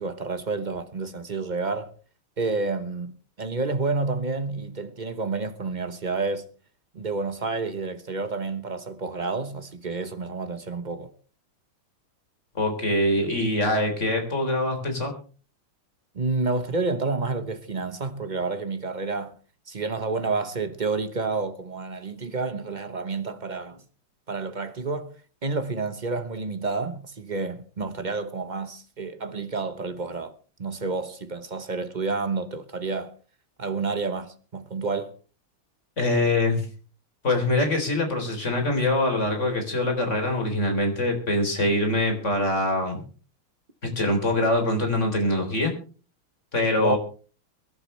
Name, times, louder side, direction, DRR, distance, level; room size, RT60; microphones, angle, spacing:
voice 1, 0.0-1.9 2.4-6.5 6.9-11.1 16.1-19.3 19.7-23.8 24.3-25.1 25.4-33.1 33.6-35.1 46.8-47.0, right 3 dB, 35° right, 0.8 m, -29 dB
voice 2, 12.6-15.1 36.0-36.7 37.2-43.0 43.8-45.7 46.5-47.0, left 1 dB, 35° left, 4.0 m, -24 dB
23.5 x 12.0 x 3.3 m
omnidirectional pair, 2.3 m